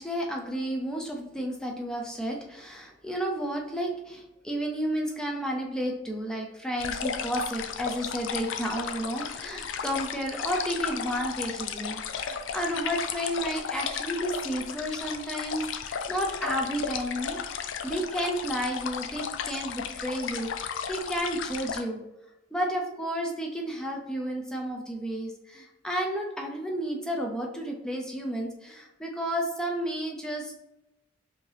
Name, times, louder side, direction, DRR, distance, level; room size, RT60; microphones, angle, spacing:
voice 1, 0.0-22.0 22.5-30.6, equal, 5° left, 0 dB, 0.6 m, -32 dB
sound 1, 6.8-21.8, left 7 dB, 85° left, 0.4 m, -34 dB
4.9 x 2.8 x 3.3 m, 0.95 s
head